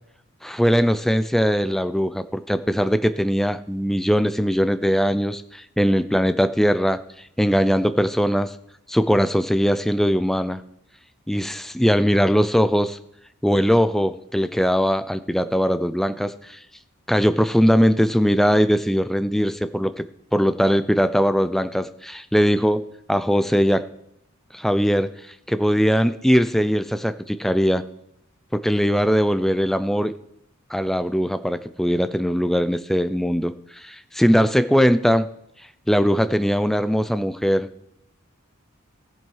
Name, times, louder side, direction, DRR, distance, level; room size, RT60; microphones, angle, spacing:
voice 1, 0.4-7.0 7.4-8.5 8.9-10.6 11.3-13.0 13.4-16.6 17.1-20.1 20.3-22.8 23.1-23.8 24.5-27.8 28.5-30.1 30.7-35.3 35.9-37.7, equal, ahead, 12 dB, 0.4 m, -20 dB
15.0 x 7.5 x 4.7 m, 0.77 s
head